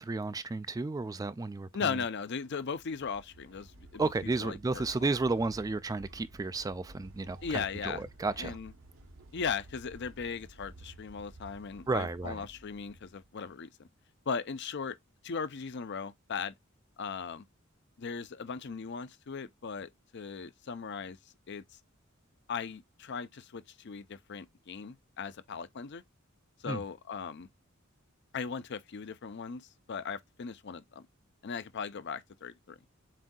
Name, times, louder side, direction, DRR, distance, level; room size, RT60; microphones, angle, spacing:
voice 1, 0.0-2.0 4.0-8.6 11.9-12.5 26.7-26.8, right 3 dB, 15° right, 0.3 m, -33 dB
voice 2, 1.7-5.1 7.4-8.0 8.4-8.7 9.3-13.9 14.3-15.0 15.2-16.5 17.0-17.4 18.0-21.2 21.5-21.8 22.5-26.0 26.6-27.5 28.3-31.1 31.4-32.8, left 5 dB, 60° left, 0.6 m, -38 dB
sound 1, 2.5-13.5, right 1 dB, 80° right, 1.1 m, -53 dB
7.4 x 2.7 x 2.3 m
head